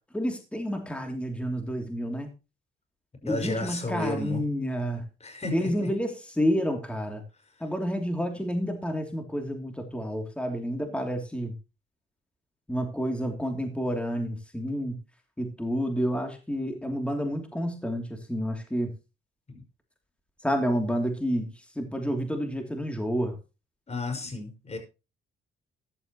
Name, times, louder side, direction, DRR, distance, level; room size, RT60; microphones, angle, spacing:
voice 1, 0.1-2.3 3.2-5.0 5.5-7.2 7.6-11.5 12.7-15.0 15.4-18.9 20.4-23.4, equal, 5° left, 4 dB, 2.9 m, -29 dB
voice 2, 3.3-4.4 5.2-5.9 10.8-11.0 19.5-19.6 23.9-24.8, left 2 dB, 35° left, 5 dB, 5.6 m, -33 dB
14.5 x 11.5 x 3.0 m, 0.29 s
cardioid pair, 90°, 20 cm